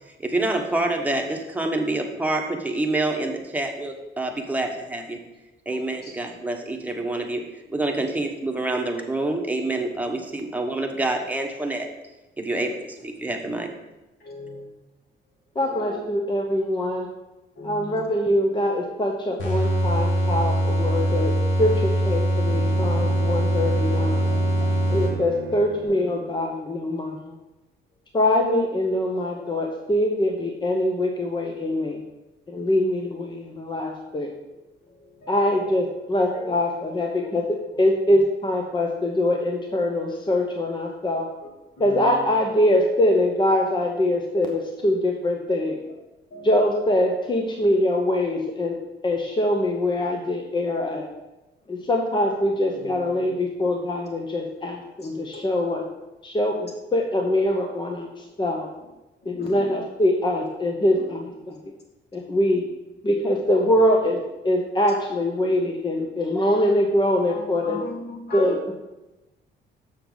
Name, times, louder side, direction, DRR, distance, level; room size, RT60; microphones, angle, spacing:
voice 1, 0.2-5.2 5.6-7.4 7.7-11.9 12.4-13.7, right 2 dB, 10° right, 2 dB, 1.2 m, -27 dB
voice 2, 5.7-6.1 7.9-8.1 12.4-12.5 14.2-14.7 15.6-16.0 17.6-18.0 19.3-19.4 24.0-24.4 25.3-25.4 25.9-26.0 29.4-29.6 34.8-35.7 36.3-36.5 36.8-36.9 38.1-38.2 41.4-41.5 41.8-42.3 46.3-46.5 51.6-51.7 52.7-53.3 55.3-55.4 56.3-56.6 59.2-59.7 60.8-61.0 63.6-63.7 67.3-68.6, left 2 dB, 55° left, -2 dB, 2.6 m, -40 dB
voice 3, 15.5-17.1 17.6-21.3 21.6-24.2 24.9-27.4 28.1-32.0 32.5-34.3 35.3-37.4 37.8-41.3 41.8-45.8 46.4-48.8 49.0-51.1 51.7-55.8 56.2-58.7 59.3-61.6 62.1-62.6 63.0-64.2 64.4-67.8 68.3-68.7, left 1 dB, 25° left, 2 dB, 0.9 m, -23 dB
sound 1, 19.4-25.5, right 1 dB, 75° left, 2.0 m, -22 dB
Bowed string instrument, 22.4-26.5, right 8 dB, 85° right, 0.9 m, -37 dB
7.1 x 6.7 x 4.0 m, 1.0 s
cardioid pair, 90°, 20 cm